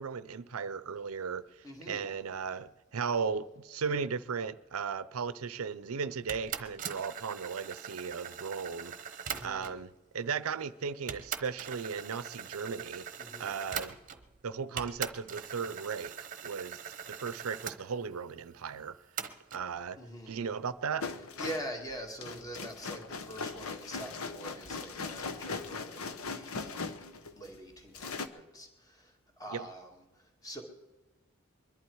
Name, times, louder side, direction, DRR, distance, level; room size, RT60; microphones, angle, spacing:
voice 1, 0.0-13.0 13.4-14.0 14.4-16.8 17.1-19.0 19.5-20.0 20.3-21.0 29.5-29.7, right 5 dB, 90° right, 0.6 m, -36 dB
voice 2, 1.6-2.1 9.3-9.8 13.2-13.5 20.0-20.4 21.4-27.1 27.3-29.9 30.2-30.6, right 1 dB, 15° left, 2.0 m, -44 dB
sound 1, 6.3-9.9 10.6-10.7 11.1-14.4 14.8-17.8 19.2-19.7, right 8 dB, 40° right, 0.9 m, -41 dB
sound 2, 21.0-27.6 27.9-28.3, left 4 dB, 85° left, 0.9 m, -39 dB
22.5 x 11.5 x 4.7 m
head